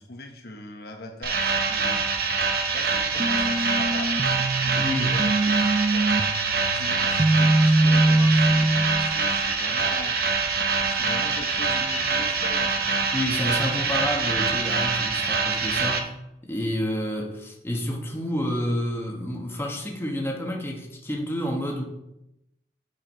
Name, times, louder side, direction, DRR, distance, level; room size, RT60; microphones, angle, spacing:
voice 1, 0.0-2.0 2.7-5.6 5.9-6.1 6.7-10.2 10.9-13.0 15.2-15.3, left 1 dB, 55° left, 3 dB, 0.9 m, -40 dB
sound 1, 1.2-16.0, right 4 dB, 55° right, 0.9 m, -25 dB
sound 2, 3.2-9.1, right 2 dB, 25° right, 0.4 m, -23 dB
voice 2, 4.7-5.1 13.1-16.1 16.4-21.8, equal, 15° left, 0 dB, 1.0 m, -29 dB
9.0 x 4.7 x 4.5 m, 0.86 s
head